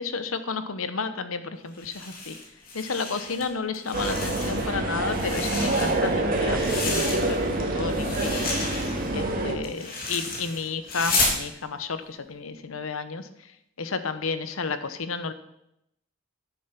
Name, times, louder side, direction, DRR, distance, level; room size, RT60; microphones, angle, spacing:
voice 1, 0.0-2.4 2.7-8.3 9.1-13.3 13.8-15.3, left 4 dB, 75° left, 11 dB, 0.9 m, -32 dB
sound 1, 1.7-3.4 3.7-4.8 5.1-7.6 7.9-11.4, left 3 dB, 45° left, 2.7 m, -31 dB
sound 2, 3.9-9.5, right 2 dB, 45° right, 1.8 m, -26 dB
10.0 x 7.2 x 5.8 m, 0.81 s
head